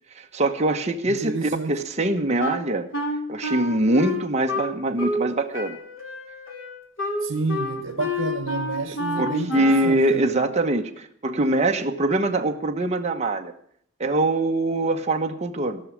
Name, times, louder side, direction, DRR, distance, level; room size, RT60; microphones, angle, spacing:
voice 1, 0.2-2.9 3.3-5.8 9.2-13.5 14.0-15.8, right 2 dB, 35° right, 1.1 m, -23 dB
voice 2, 1.1-1.7 7.2-10.5, right 3 dB, 80° right, 1.0 m, -29 dB
Wind instrument woodwind instrument, 2.4-5.3 5.5-10.0, left 1 dB, 75° left, 3.3 m, -29 dB
15.5 x 6.3 x 9.7 m
head